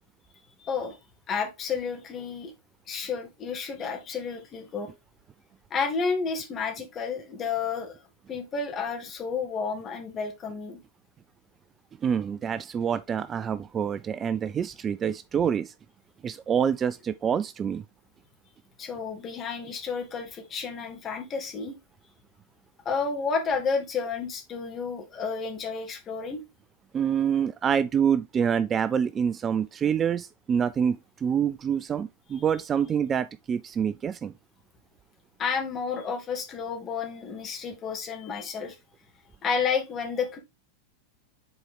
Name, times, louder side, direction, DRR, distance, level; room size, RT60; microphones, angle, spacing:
voice 1, 0.6-1.0 1.3-2.5 2.9-4.9 5.7-8.0 8.3-10.8 18.8-21.8 22.9-26.4 35.4-38.8 39.4-40.4, left 5 dB, 25° left, 2.1 m, -31 dB
voice 2, 12.0-15.7 16.2-17.8 26.9-34.3, right 8 dB, 25° right, 0.3 m, -26 dB
7.7 x 4.3 x 3.7 m
figure-of-eight pair, 90°, 0 cm